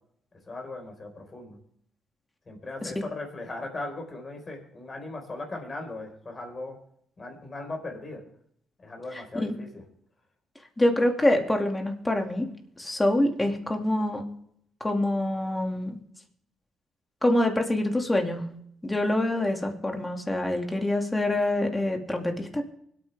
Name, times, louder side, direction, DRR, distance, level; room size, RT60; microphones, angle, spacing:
voice 1, 0.5-1.6 2.5-6.8 7.2-8.2 8.8-9.8, left 2 dB, 30° left, 2 dB, 4.8 m, -38 dB
voice 2, 9.1-9.6 10.8-12.5 12.8-14.2 14.8-16.0 17.2-18.5 18.8-22.6, left 1 dB, 15° left, 3 dB, 2.4 m, -25 dB
24.5 x 8.9 x 3.5 m, 0.70 s
cardioid pair, 90°, 0 cm